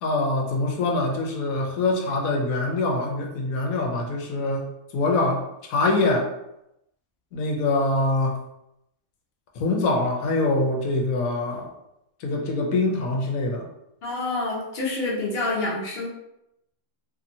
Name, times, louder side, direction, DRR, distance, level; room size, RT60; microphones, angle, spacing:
voice 1, 0.0-5.4 5.7-6.3 7.3-8.4 9.6-11.7 12.2-13.6, left 2 dB, 80° left, 1 dB, 1.0 m, -24 dB
voice 2, 14.0-16.1, left 2 dB, 50° left, -3 dB, 0.9 m, -27 dB
2.8 x 2.6 x 2.6 m, 0.84 s
omnidirectional pair, 1.5 m